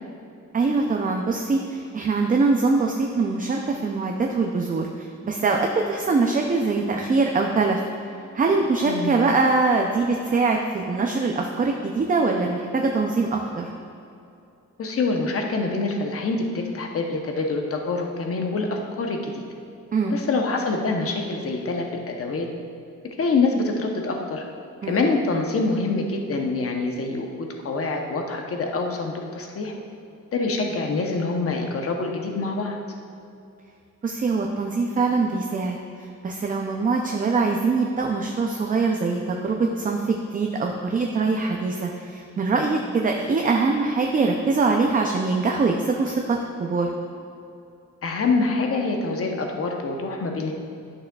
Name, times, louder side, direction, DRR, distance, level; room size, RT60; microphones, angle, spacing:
voice 1, 0.5-7.8 8.3-13.7 19.9-20.2 24.8-25.0 34.0-46.9, right 3 dB, 25° right, 2 dB, 0.4 m, -23 dB
voice 2, 14.8-19.4 20.1-22.5 23.2-24.4 24.9-29.7 30.3-32.8 48.0-50.5, left 3 dB, 45° left, 2 dB, 0.8 m, -25 dB
11.0 x 6.4 x 2.3 m, 2.7 s
wide cardioid pair, 160°, 31 cm